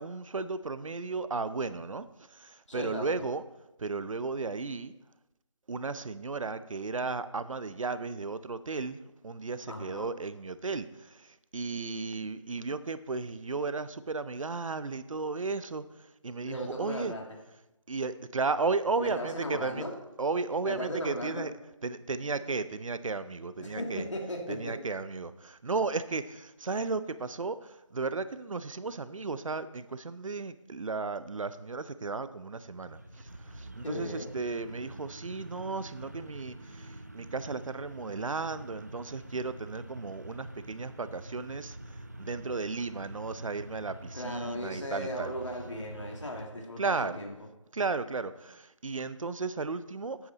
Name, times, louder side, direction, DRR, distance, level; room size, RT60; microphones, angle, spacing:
voice 1, 0.0-2.0 2.7-3.4 3.8-4.9 5.7-9.0 9.2-10.9 11.5-15.8 16.2-17.1 17.9-19.8 20.2-21.5 21.8-24.0 24.5-27.6 27.9-33.0 33.8-36.5 37.1-41.7 42.2-45.3 46.8-47.2 47.7-50.2, right 4 dB, 80° right, 13 dB, 0.7 m, -34 dB
voice 2, 2.7-3.2 9.7-10.1 16.4-17.2 19.0-19.9 20.6-21.4 23.6-24.7 33.8-34.3 44.1-47.3, left 1 dB, 65° left, 0 dB, 2.4 m, -37 dB
sound 1, 32.4-46.5, right 1 dB, 30° right, 0.5 m, -46 dB
9.7 x 8.6 x 4.0 m, 0.96 s
figure-of-eight pair, 180°, 17 cm